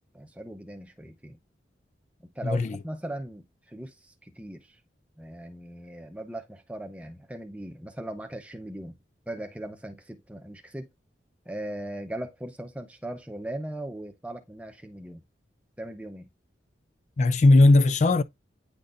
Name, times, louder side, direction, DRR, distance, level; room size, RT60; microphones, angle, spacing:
voice 1, 0.1-1.4 2.2-4.8 5.2-9.0 9.3-10.9 11.5-15.2 15.8-16.3, right 1 dB, 5° right, 0.7 m, -39 dB
voice 2, 2.4-2.8 17.2-18.2, left 2 dB, 40° left, 0.4 m, -18 dB
9.5 x 3.9 x 2.5 m
head